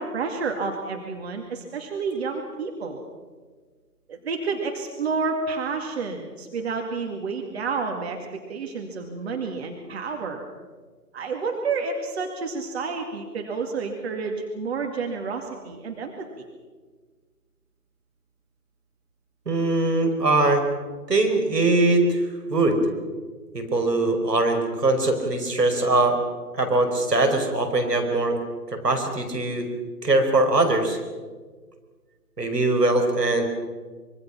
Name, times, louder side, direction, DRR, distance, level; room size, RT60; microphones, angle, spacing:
voice 1, 0.0-3.0 4.1-10.5 11.1-16.5, right 4 dB, 40° right, 3 dB, 2.3 m, -30 dB
voice 2, 19.5-20.6 21.1-22.2 22.5-22.8 23.5-26.2 26.5-28.4 28.7-29.7 30.0-31.0 32.4-33.5, right 2 dB, 75° right, 4 dB, 5.1 m, -21 dB
25.0 x 23.0 x 6.0 m, 1.4 s
figure-of-eight pair, 140°, 48 cm